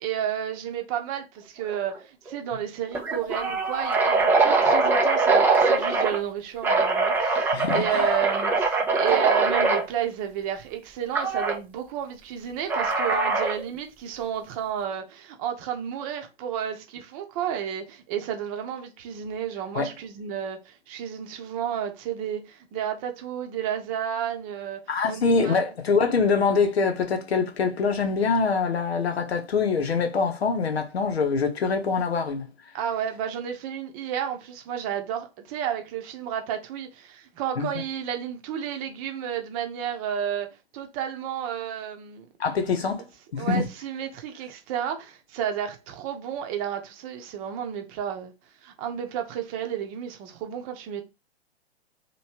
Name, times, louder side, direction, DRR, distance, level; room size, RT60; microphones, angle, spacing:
voice 1, 0.0-24.8 25.1-25.6 32.7-42.3 43.4-48.3 48.6-51.0, right 9 dB, 35° right, 0.8 m, -31 dB
sound 1, 1.7-2.0 2.3-2.4 2.9-6.2 6.6-9.8 11.2-11.6 12.7-13.6, right 3 dB, 5° right, 0.5 m, -22 dB
voice 2, 7.5-8.0 19.7-19.9 24.9-32.5 37.6-37.7 42.4-43.0 43.3-43.6, left 4 dB, 70° left, 0.9 m, -24 dB
3.0 x 3.0 x 3.0 m
figure-of-eight pair, 110°, 32 cm